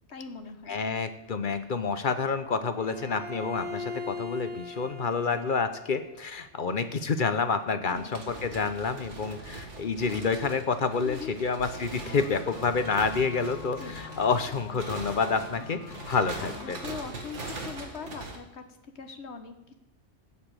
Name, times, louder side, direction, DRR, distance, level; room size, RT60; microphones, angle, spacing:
voice 1, 0.1-0.8 5.1-5.4 7.9-8.1 11.0-11.4 13.6-14.0 15.6-19.8, left 5 dB, 65° left, 8 dB, 1.5 m, -42 dB
voice 2, 0.7-15.8 16.1-16.8, left 5 dB, 50° left, 10 dB, 1.0 m, -28 dB
Bowed string instrument, 2.8-6.2, left 3 dB, 10° right, 1.4 m, -39 dB
sound 1, 7.9-18.4, right 2 dB, 80° right, 2.3 m, -41 dB
sound 2, 12.0-17.1, left 11 dB, 90° left, 1.0 m, -45 dB
15.0 x 5.0 x 9.0 m, 0.91 s
omnidirectional pair, 1.2 m